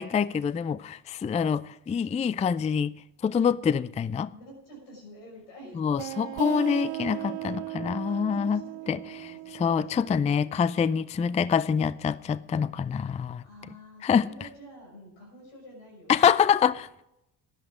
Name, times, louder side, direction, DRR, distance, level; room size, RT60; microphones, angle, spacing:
voice 1, 0.0-2.9 3.2-4.3 5.8-8.6 8.9-9.3 9.6-13.4 14.0-14.3 16.1-16.7, left 7 dB, 15° left, 0.3 m, -25 dB
voice 2, 4.3-5.9 6.2-6.3 8.1-10.0 13.4-16.7, right 1 dB, 85° left, 6.0 m, -49 dB
sound 1, 6.0-11.3, right 22 dB, 65° right, 0.5 m, -38 dB
12.5 x 11.0 x 4.9 m
hypercardioid pair, 60°, 46 cm